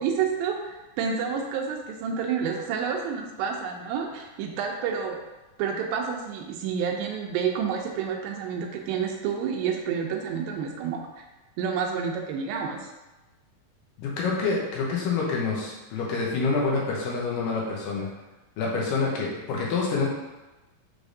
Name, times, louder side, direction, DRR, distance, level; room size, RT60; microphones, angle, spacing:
voice 1, 0.0-5.2 5.6-11.0 11.6-12.9, right 6 dB, 85° right, 1 dB, 2.4 m, -29 dB
voice 2, 14.0-18.1 18.6-20.1, left 4 dB, 75° left, -3 dB, 2.4 m, -27 dB
6.2 x 3.3 x 2.6 m, 1.1 s
omnidirectional pair, 4.1 m